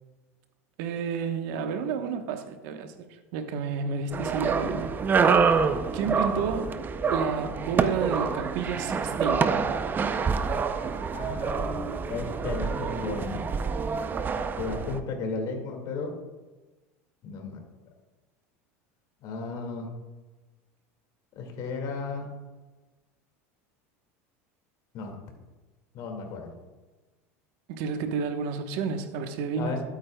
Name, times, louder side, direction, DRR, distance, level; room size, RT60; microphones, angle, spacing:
voice 1, 0.8-5.0 5.9-9.6 27.7-29.8, right 6 dB, 65° right, 1.1 m, -31 dB
sound 1, 4.1-15.0, right 5 dB, 25° right, 0.5 m, -27 dB
voice 2, 6.1-6.5 11.1-13.4 14.6-16.1 17.2-17.6 19.2-19.9 21.4-22.3 24.9-25.1 25.9-26.5 29.6-29.8, left 4 dB, 55° left, 2.1 m, -34 dB
12.5 x 8.6 x 2.3 m
supercardioid pair, 110°, 8 cm